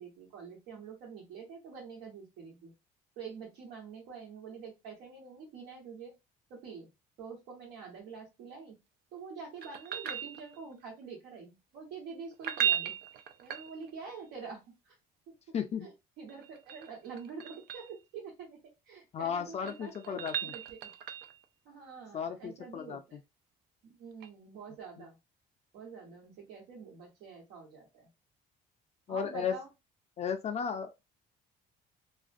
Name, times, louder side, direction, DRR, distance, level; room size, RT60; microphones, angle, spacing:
voice 1, 0.0-2.7 3.2-6.1 6.5-6.9 7.2-8.8 9.1-13.0 13.4-14.9 15.3-15.4 15.8-18.6 18.9-20.9 21.6-23.2 23.8-25.2 25.7-28.1 29.1-29.7, right 5 dB, 90° right, 1.2 m, -46 dB
sound 1, 9.6-10.8 12.3-14.1 16.3-17.9 19.3-21.4 24.2-24.3, right 10 dB, 70° right, 0.4 m, -36 dB
voice 2, 15.5-15.9 19.1-20.5 22.1-23.2 25.0-25.1 29.1-29.6 30.2-31.0, left 7 dB, 40° left, 0.4 m, -35 dB
2.4 x 2.1 x 2.5 m
cardioid pair, 110°, 17 cm